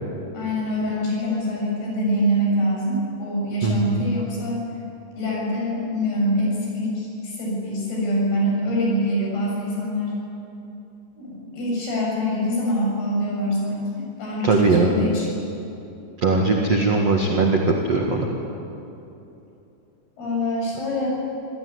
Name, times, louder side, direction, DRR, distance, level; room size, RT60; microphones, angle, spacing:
voice 1, 0.3-4.6 5.2-10.1 11.2-15.3 20.2-21.1, equal, 50° left, -3 dB, 9.3 m, -24 dB
voice 2, 3.6-4.0 14.4-14.9 16.2-18.3, right 3 dB, 60° right, 1 dB, 1.7 m, -20 dB
27.0 x 17.5 x 9.7 m, 2.9 s
omnidirectional pair, 5.9 m